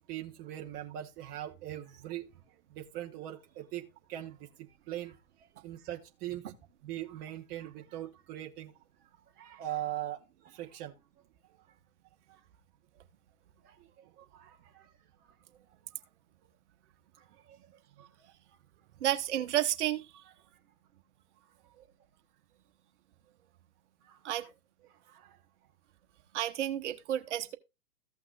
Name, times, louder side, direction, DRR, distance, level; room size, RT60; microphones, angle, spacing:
voice 1, 0.1-2.3 2.7-6.4 6.8-8.7 9.4-10.9 12.3-12.4 13.6-14.9 15.2-15.3 17.2-17.6 18.0-18.3 21.7-21.9 24.0-24.2 25.0-25.4, right 12 dB, 20° right, 0.8 m, -42 dB
voice 2, 19.0-20.1 24.2-24.4 26.3-27.5, right 12 dB, 50° right, 1.2 m, -31 dB
15.0 x 5.8 x 2.4 m
hypercardioid pair, 135°, 45 cm